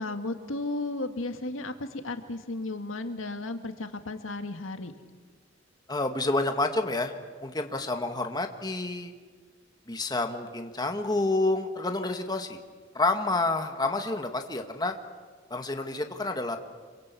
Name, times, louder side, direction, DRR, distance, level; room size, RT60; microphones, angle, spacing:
voice 1, 0.0-4.9, left 2 dB, 85° left, 7 dB, 1.8 m, -34 dB
voice 2, 5.9-7.1 7.4-9.1 9.9-12.6 12.9-14.9 15.5-16.6, left 2 dB, 20° left, 5 dB, 1.7 m, -29 dB
27.0 x 23.5 x 8.4 m, 1.5 s
head